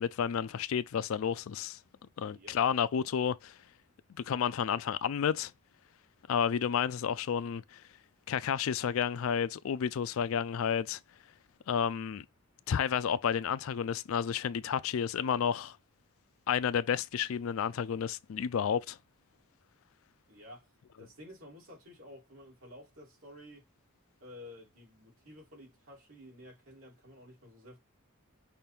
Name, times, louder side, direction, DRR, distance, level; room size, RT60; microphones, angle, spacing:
voice 1, 0.0-1.8 2.2-3.5 4.3-5.5 6.3-7.8 8.3-11.0 11.7-12.2 12.7-15.8 16.5-19.0, left 7 dB, 70° left, 0.4 m, -31 dB
voice 2, 2.2-2.6 20.3-20.7 21.0-23.6 24.2-27.8, left 1 dB, 75° right, 2.9 m, -52 dB
5.8 x 2.6 x 3.4 m
head